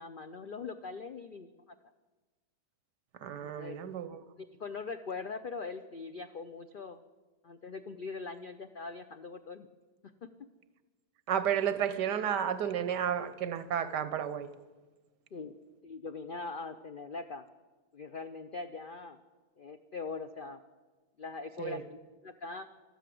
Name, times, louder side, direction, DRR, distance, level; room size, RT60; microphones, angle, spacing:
voice 1, 0.0-1.5 3.2-3.8 4.4-7.0 7.4-9.7 10.2-10.3 15.3-15.5 15.8-17.4 17.9-19.2 19.6-20.6 21.2-22.7, left 4 dB, 85° left, 0.4 m, -42 dB
voice 2, 3.2-4.2 11.3-14.5 21.6-21.8, right 9 dB, 85° right, 1.5 m, -32 dB
14.0 x 12.5 x 7.6 m
omnidirectional pair, 1.8 m